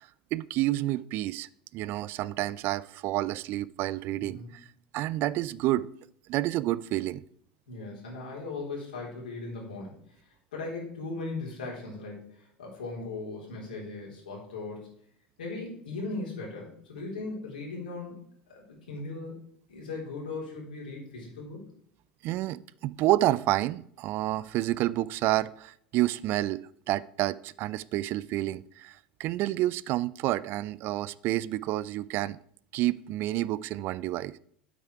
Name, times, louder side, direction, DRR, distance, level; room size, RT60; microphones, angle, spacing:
voice 1, 0.0-4.6 4.9-5.9 6.3-7.2 22.2-26.6 26.9-32.4 32.7-34.3, right 16 dB, 55° right, 0.4 m, -29 dB
voice 2, 4.2-4.5 7.7-9.9 10.5-14.9 15.4-18.2 18.5-19.4 19.7-21.6, left 3 dB, 80° left, 3.9 m, -38 dB
8.5 x 8.4 x 4.7 m
hypercardioid pair, 75°, 5 cm